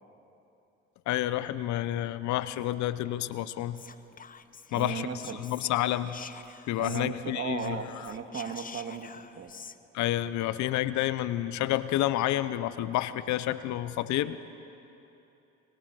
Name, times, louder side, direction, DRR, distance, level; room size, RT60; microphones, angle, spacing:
voice 1, 1.1-3.8 4.7-5.1 5.4-6.2 6.7-7.8 9.9-14.4, left 14 dB, 65° left, 14 dB, 0.9 m, -29 dB
Whispering, 3.7-7.3 7.5-9.8, left 6 dB, 25° left, 0.9 m, -48 dB
voice 2, 4.7-5.4 6.8-9.5, right 6 dB, 45° right, 6 dB, 2.0 m, -36 dB
25.5 x 24.0 x 6.3 m, 2.9 s
hypercardioid pair, 65°, 31 cm